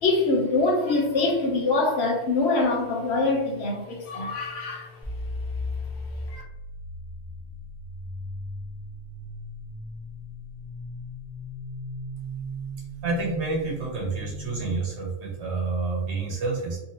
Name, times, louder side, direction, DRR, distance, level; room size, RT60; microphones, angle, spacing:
voice 1, 0.0-5.0 6.3-6.4, left 3 dB, 70° left, -1 dB, 1.1 m, -24 dB
sound 1, 5.0-14.8, left 1 dB, ahead, 1.0 m, -37 dB
voice 2, 13.0-16.8, right 3 dB, 70° right, -1 dB, 1.3 m, -28 dB
3.3 x 3.1 x 2.8 m, 1.0 s
omnidirectional pair, 1.2 m